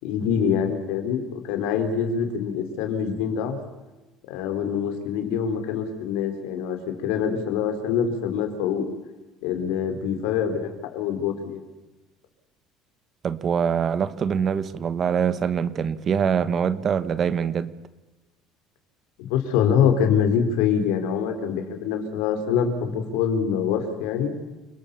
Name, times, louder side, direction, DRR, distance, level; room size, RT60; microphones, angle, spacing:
voice 1, 0.0-3.6 4.3-8.8 9.4-11.6 19.2-24.3, left 7 dB, 85° left, 4.7 m, -25 dB
voice 2, 13.2-17.7, right 7 dB, 35° right, 1.2 m, -24 dB
29.0 x 20.5 x 7.2 m
cardioid pair, 145°, 0 cm